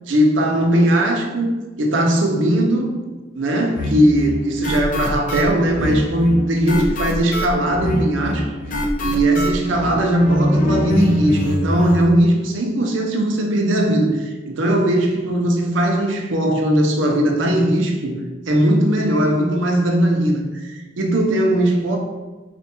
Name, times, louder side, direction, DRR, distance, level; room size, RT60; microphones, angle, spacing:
voice 1, 0.1-1.5 1.8-2.9 3.3-8.5 9.0-22.0, right 1 dB, 85° right, 1 dB, 0.6 m, -19 dB
sound 1, 3.8-12.0, left 1 dB, 45° left, 0.4 m, -24 dB
4.2 x 2.2 x 2.9 m, 1.2 s
head